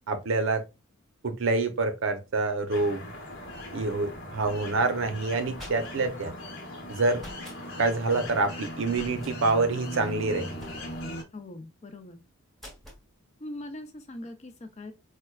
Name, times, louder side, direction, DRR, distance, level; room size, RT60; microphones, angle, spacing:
voice 1, 0.1-0.6 1.2-3.0 3.7-6.3 6.9-7.2 7.8-10.6, right 3 dB, 60° right, 0.6 m, -27 dB
sound 1, 2.7-11.2, left 1 dB, 55° left, 0.9 m, -39 dB
sound 2, 5.6-6.2 7.2-7.6 8.9-9.4 10.6-11.1 12.6-13.0, left 1 dB, ahead, 0.9 m, -46 dB
voice 2, 11.3-12.2 13.4-14.9, left 1 dB, 30° left, 0.4 m, -41 dB
4.4 x 2.2 x 2.2 m
head